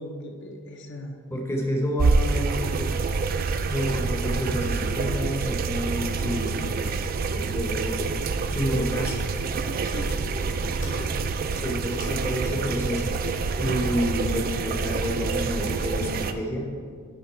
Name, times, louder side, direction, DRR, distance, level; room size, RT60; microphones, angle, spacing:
voice 1, 0.0-1.2 9.8-11.2, left 1 dB, 55° left, 2 dB, 0.6 m, -39 dB
voice 2, 1.3-2.9 3.7-6.9 7.3-8.0 8.5-9.2 11.5-16.7, equal, 10° left, 0 dB, 0.7 m, -29 dB
sound 1, 2.0-16.3, right 4 dB, 40° right, 0.3 m, -27 dB
sound 2, 9.4-15.8, left 2 dB, 75° left, 2.0 m, -50 dB
10.5 x 3.6 x 4.4 m, 2.1 s
head